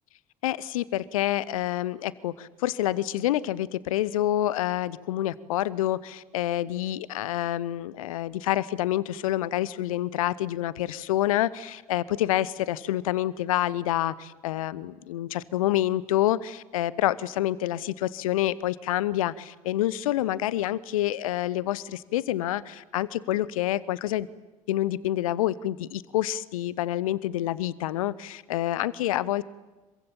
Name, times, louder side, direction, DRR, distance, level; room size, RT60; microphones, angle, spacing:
voice 1, 0.4-24.3 24.7-29.4, left 14 dB, 70° left, 20 dB, 0.9 m, -27 dB
26.0 x 23.5 x 8.8 m, 1.2 s
figure-of-eight pair, 55°, 18 cm